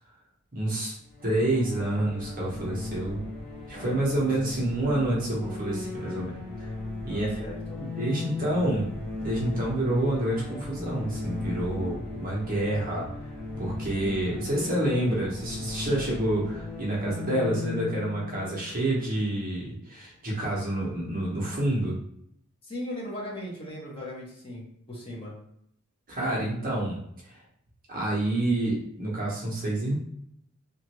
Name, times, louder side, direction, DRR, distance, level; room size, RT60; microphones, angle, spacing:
voice 1, 0.5-1.0 1.2-3.2 3.7-6.3 6.6-6.7 7.0-7.5 7.8-8.9 9.2-13.1 13.6-22.0 26.1-27.0 27.3-27.4 27.9-29.9, right 1 dB, 40° right, -4 dB, 0.9 m, -28 dB
sound 1, 1.1-19.7, left 3 dB, 5° left, 1.1 m, -37 dB
voice 2, 3.7-4.2 7.1-7.8 22.6-25.3, left 1 dB, 25° left, -5 dB, 1.0 m, -38 dB
3.0 x 2.5 x 2.9 m, 0.72 s
head